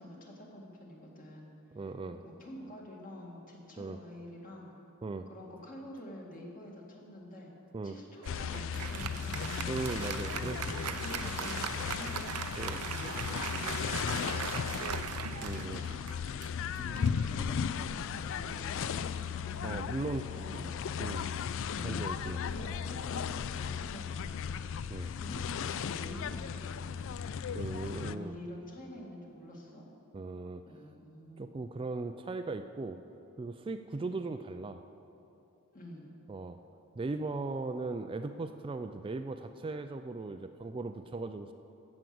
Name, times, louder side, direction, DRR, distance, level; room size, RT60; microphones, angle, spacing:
voice 1, 0.0-1.5 2.2-4.7 5.3-7.5 7.8-9.4 10.3-12.4 12.8-15.2 16.4-19.6 20.3-20.7 21.2-21.5 22.3-24.5 25.2-27.2 28.1-29.9 30.7-31.4 35.7-36.1, equal, 40° left, -2 dB, 2.1 m, -47 dB
voice 2, 1.7-2.2 3.8-4.0 5.0-5.3 7.7-8.0 9.7-10.6 10.9-11.0 12.6-12.8 15.4-15.8 19.6-20.2 21.0-21.3 21.8-22.4 24.9-25.1 27.5-28.3 30.1-30.6 31.4-33.0 33.4-34.8 36.3-36.6 37.0-41.5, right 3 dB, 25° right, 8 dB, 0.3 m, -38 dB
sound 1, 8.2-28.2, left 7 dB, 60° left, 0.4 m, -36 dB
Applause, 8.2-18.0, right 7 dB, 90° right, 0.6 m, -40 dB
15.0 x 6.3 x 7.7 m, 2.8 s
head